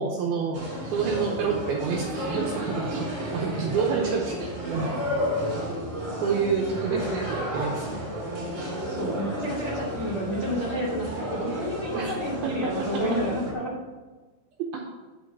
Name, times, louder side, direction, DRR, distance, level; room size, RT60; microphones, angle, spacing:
voice 1, 0.0-4.9 6.2-8.0 11.9-12.2 12.4-12.5 14.7-14.8, right 5 dB, 80° right, -1 dB, 2.3 m, -28 dB
sound 1, 0.5-13.5, equal, 45° right, 0.9 m, -32 dB
sound 2, 6.4-10.5, left 1 dB, 50° left, 1.8 m, -42 dB
voice 2, 8.8-13.7, equal, 65° left, -5 dB, 1.3 m, -30 dB
11.0 x 4.0 x 5.9 m, 1.2 s
omnidirectional pair, 5.3 m